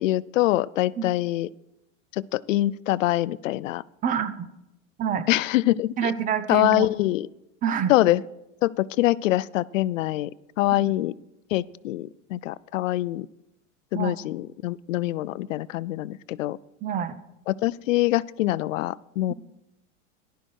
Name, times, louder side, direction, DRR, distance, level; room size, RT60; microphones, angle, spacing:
voice 1, 0.0-1.5 2.1-3.8 5.3-6.1 6.5-7.3 7.9-8.2 8.6-10.3 10.6-11.1 11.5-13.3 13.9-16.6 17.5-19.3, left 16 dB, 90° left, 20 dB, 0.5 m, -24 dB
voice 2, 4.0-4.3 5.0-5.3 6.0-6.9 7.6-7.9 10.8-10.9 13.9-14.2 16.8-17.1, right 8 dB, 20° right, 14 dB, 0.6 m, -27 dB
14.5 x 11.5 x 4.6 m, 0.88 s
supercardioid pair, 145°, 38 cm